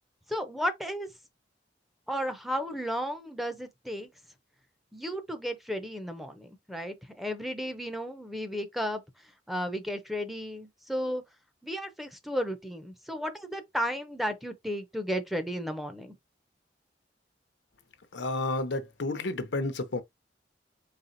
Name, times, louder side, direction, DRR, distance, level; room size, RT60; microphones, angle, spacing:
voice 1, 0.3-1.1 2.1-4.1 4.9-9.0 9.5-11.2 11.6-16.1, equal, ahead, 0.6 m, -33 dB
voice 2, 18.1-20.0, left 2 dB, 80° left, 0.7 m, -31 dB
4.1 x 3.6 x 2.6 m
head